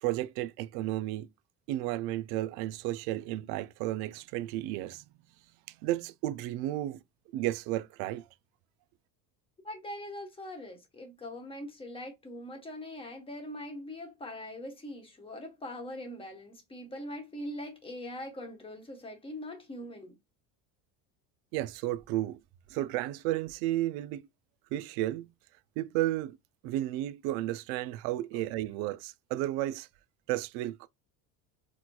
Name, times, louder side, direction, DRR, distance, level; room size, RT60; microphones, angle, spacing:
voice 1, 0.0-1.3 1.7-5.0 5.7-7.0 7.3-8.2 21.5-22.4 22.7-24.3 24.7-25.3 25.8-26.4 26.6-29.9 30.3-30.9, right 15 dB, 80° right, 0.5 m, -33 dB
voice 2, 9.6-20.2, left 1 dB, 15° left, 1.0 m, -42 dB
4.4 x 2.1 x 2.2 m
cardioid pair, 130°, 37 cm